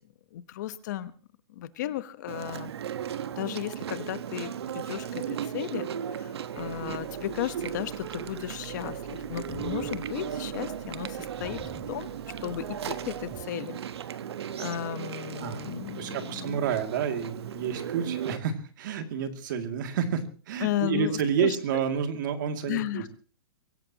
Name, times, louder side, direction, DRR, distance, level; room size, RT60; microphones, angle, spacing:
voice 1, 0.3-1.1 1.5-2.7 3.4-11.6 11.9-12.1 12.4-13.8 14.6-16.6 20.6-21.6 22.7-23.1, left 13 dB, 45° left, 13 dB, 1.1 m, -34 dB
Chewing mastication, 2.3-18.4, right 9 dB, 80° right, 1.3 m, -36 dB
sound 1, 6.6-13.4, left 3 dB, 5° right, 4.6 m, -49 dB
voice 2, 15.4-23.1, right 7 dB, 50° right, 6 dB, 2.6 m, -30 dB
24.0 x 16.5 x 3.0 m, 0.38 s
hypercardioid pair, 165°, 13 cm